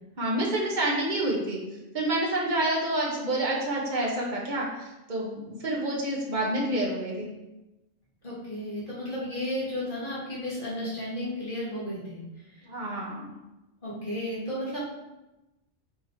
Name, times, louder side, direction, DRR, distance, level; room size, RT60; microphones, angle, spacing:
voice 1, 0.2-1.6 1.9-7.3 12.7-13.3, right 1 dB, 35° right, -3 dB, 1.5 m, -28 dB
voice 2, 8.2-12.2 13.8-14.8, left 1 dB, 40° left, -8 dB, 2.6 m, -33 dB
6.8 x 4.0 x 4.7 m, 1.0 s
omnidirectional pair, 1.3 m